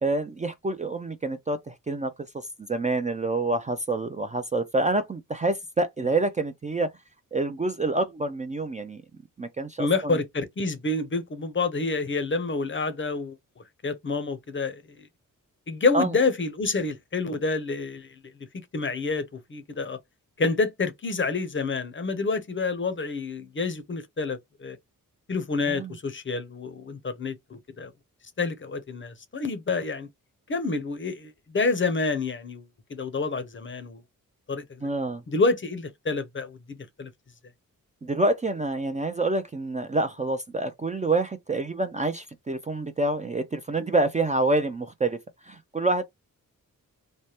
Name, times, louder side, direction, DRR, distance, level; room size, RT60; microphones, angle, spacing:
voice 1, 0.0-2.1 2.7-6.9 7.3-9.0 9.4-10.2 15.9-16.1 25.7-26.0 34.8-35.2 38.0-45.2 45.5-46.0, right 2 dB, 20° right, 0.4 m, -27 dB
voice 2, 9.8-13.4 13.8-14.8 15.7-18.1 18.7-20.0 20.4-24.8 25.3-27.4 27.8-27.9 28.4-30.1 30.5-34.0 34.5-34.9 35.3-37.1, left 3 dB, 35° left, 0.6 m, -28 dB
3.2 x 2.1 x 2.8 m
cardioid pair, 65°, 34 cm